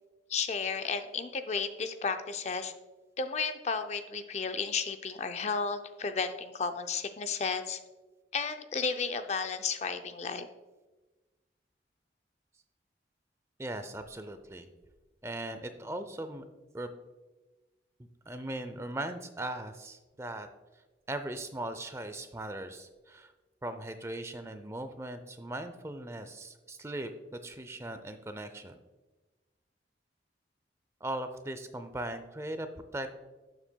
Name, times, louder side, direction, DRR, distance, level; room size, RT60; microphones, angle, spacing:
voice 1, 0.3-2.7 3.2-7.8 8.3-10.5, left 5 dB, 40° left, 9 dB, 0.4 m, -33 dB
voice 2, 13.6-14.7 15.2-16.4 16.7-16.9 18.0-20.5 21.1-23.3 23.6-28.8 31.0-33.1, right 1 dB, 15° right, 9 dB, 0.4 m, -39 dB
12.0 x 7.2 x 2.2 m, 1.2 s
head